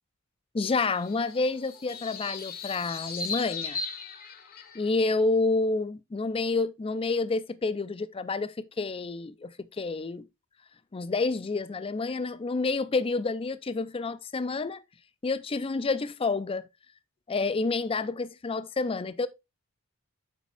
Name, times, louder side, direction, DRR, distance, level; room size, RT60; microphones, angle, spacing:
voice 1, 0.5-3.8 4.7-10.3 10.9-14.8 15.2-16.6 17.3-19.3, left 3 dB, 25° left, 0.4 m, -29 dB
sound 1, 0.9-4.9, left 4 dB, 40° left, 0.9 m, -37 dB
7.4 x 5.1 x 3.3 m
head